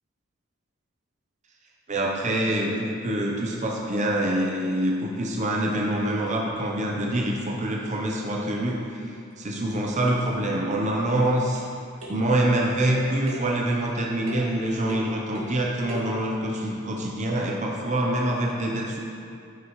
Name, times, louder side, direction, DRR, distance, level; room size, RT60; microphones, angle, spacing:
voice 1, 1.9-9.1 9.4-11.6 12.1-19.0, right 1 dB, 35° right, -2 dB, 0.7 m, -25 dB
sound 1, 9.3-9.4 9.7-10.6 11.5-11.7 12.0-12.3 13.3-13.6 14.3-14.6 14.9-15.6 15.9-16.2, left 1 dB, 85° right, 1.6 m, -39 dB
10.5 x 6.0 x 3.1 m, 2.4 s
head